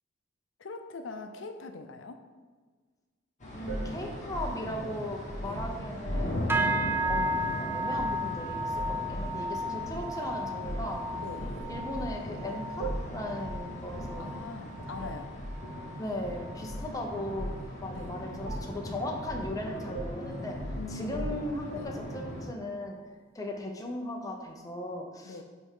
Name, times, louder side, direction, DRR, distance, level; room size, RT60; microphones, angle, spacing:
voice 1, 0.6-2.2 5.4-5.6 11.2-11.6 14.2-15.3 17.9-18.1 20.8-21.2 21.7-21.9 25.2-25.4, left 3 dB, 85° left, 6 dB, 0.6 m, -42 dB
sound 1, 3.4-22.4, left 1 dB, 40° left, 1.5 m, -39 dB
voice 2, 3.5-6.6 7.1-11.0 11.7-14.4 16.0-20.6 20.9-23.0 23.3-25.4, left 1 dB, 20° left, 1 dB, 0.8 m, -37 dB
sound 2, 3.7-6.4 7.0-7.3 8.0-8.4 8.8-9.4 9.9-10.1 10.7-11.0 11.4-12.2 12.8-13.2 13.5-13.7 14.0-14.2 15.0-15.6 16.2-17.0 17.4-17.6 17.9-18.1 18.4-18.8 19.3-19.5 19.9-21.6, right 1 dB, 70° right, 1.1 m, -38 dB
sound 3, 6.5-16.0 16.3-16.8 17.2-17.5 18.1-18.2, right 1 dB, 10° right, 0.5 m, -34 dB
9.6 x 3.6 x 3.7 m, 1.5 s
head